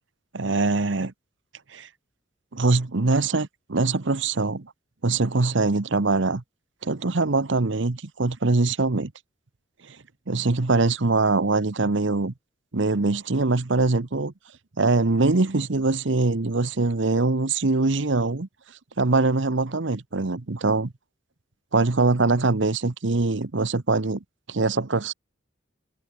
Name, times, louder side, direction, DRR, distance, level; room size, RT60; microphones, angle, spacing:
voice 1, 0.3-1.1 1.7-1.9 2.5-4.7 5.0-6.4 6.8-9.1 9.9-10.0 10.3-12.3 12.7-14.3 14.8-18.5 19.0-20.9 21.7-24.2 24.5-25.1, right 3 dB, 65° right, 1.0 m, -23 dB
head